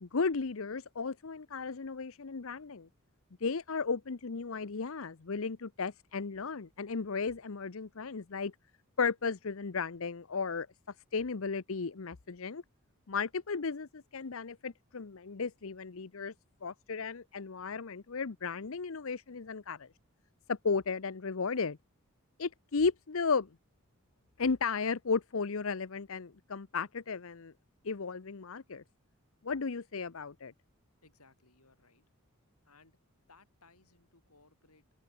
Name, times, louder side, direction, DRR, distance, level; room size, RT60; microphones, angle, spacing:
voice 1, 0.0-2.9 3.4-8.5 9.0-10.7 11.1-12.6 13.1-16.3 16.6-19.9 20.5-21.8 22.4-23.5 24.4-27.5 27.8-28.8 29.4-30.5, left 5 dB, 65° left, 0.7 m, -34 dB
voice 2, 31.0-32.1 32.6-33.0 33.3-34.8, left 3 dB, 85° left, 7.9 m, -63 dB
open air
head